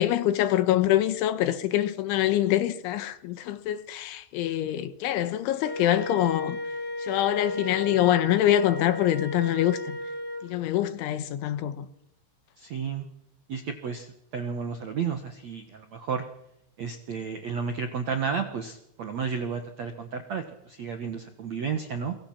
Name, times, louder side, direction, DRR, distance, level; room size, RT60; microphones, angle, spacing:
voice 1, 0.0-6.6 7.0-10.0 10.4-11.9, left 12 dB, 80° left, 3.7 m, -25 dB
Wind instrument woodwind instrument, 5.6-10.5, left 1 dB, 5° left, 4.2 m, -35 dB
voice 2, 12.6-13.1 13.5-16.2 16.8-22.2, right 6 dB, 65° right, 1.7 m, -32 dB
27.5 x 23.5 x 5.9 m
omnidirectional pair, 5.5 m